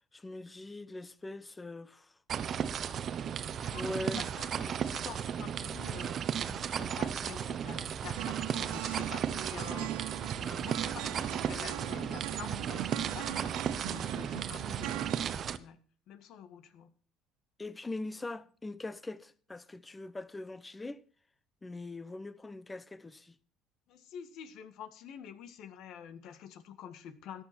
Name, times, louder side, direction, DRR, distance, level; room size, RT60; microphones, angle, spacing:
voice 1, 0.1-2.2 3.6-4.2 17.6-21.0 21.6-23.4, left 2 dB, 15° left, 0.9 m, -42 dB
sound 1, 2.3-15.6, right 8 dB, 45° right, 0.9 m, -35 dB
voice 2, 3.6-10.1 10.4-15.8 16.1-16.9 23.9-27.4, left 8 dB, 60° left, 1.8 m, -48 dB
sound 2, 8.2-15.4, right 18 dB, 85° right, 0.7 m, -41 dB
14.0 x 11.5 x 4.4 m
cardioid pair, 115°, 0 cm